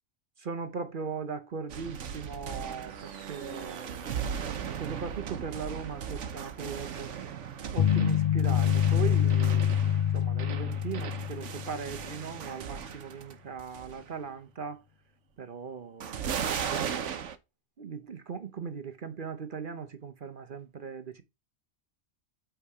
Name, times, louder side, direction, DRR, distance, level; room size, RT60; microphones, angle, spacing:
voice 1, 0.4-4.4 4.8-7.1 7.7-9.9 10.1-14.8 15.4-16.3 17.8-21.2, right 6 dB, 50° right, 0.9 m, -39 dB
sound 1, 1.7-13.3 13.6-14.1 16.0-17.4, right 7 dB, 85° right, 1.2 m, -37 dB
sound 2, 7.8-12.0, left 10 dB, 55° left, 0.5 m, -26 dB
8.4 x 3.5 x 4.8 m
omnidirectional pair, 1.2 m